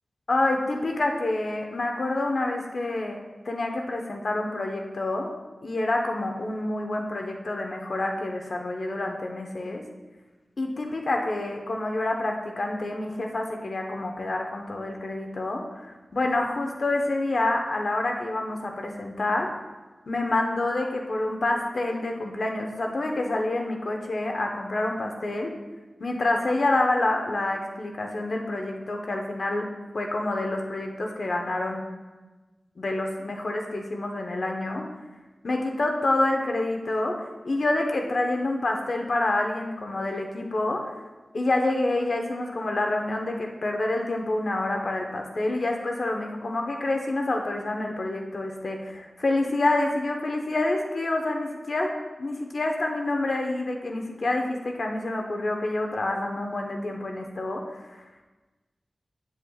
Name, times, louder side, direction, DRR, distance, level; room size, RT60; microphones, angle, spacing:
voice 1, 0.3-5.3 5.6-9.8 10.6-15.8 16.1-19.5 20.1-25.5 26.0-29.7 29.9-31.9 32.8-34.8 35.4-37.2 37.4-40.8 41.3-51.9 52.2-57.6, left 2 dB, 70° left, 2 dB, 1.1 m, -27 dB
9.7 x 9.5 x 2.4 m, 1.2 s
cardioid pair, 50°, 0 cm